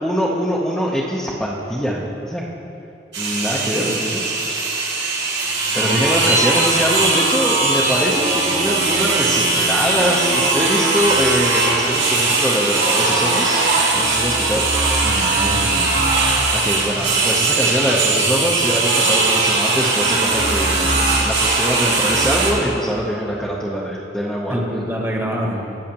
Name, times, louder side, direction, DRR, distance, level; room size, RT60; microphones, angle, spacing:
voice 1, 0.0-2.4 3.2-4.3 5.7-13.6 13.9-14.6 16.5-24.8, equal, ahead, -6 dB, 0.7 m, -23 dB
sound 1, 3.1-22.5, right 3 dB, 90° right, 2.0 m, -19 dB
voice 2, 15.0-16.0 24.5-25.8, equal, 15° right, -1 dB, 1.2 m, -26 dB
19.0 x 6.4 x 2.9 m, 2.8 s
head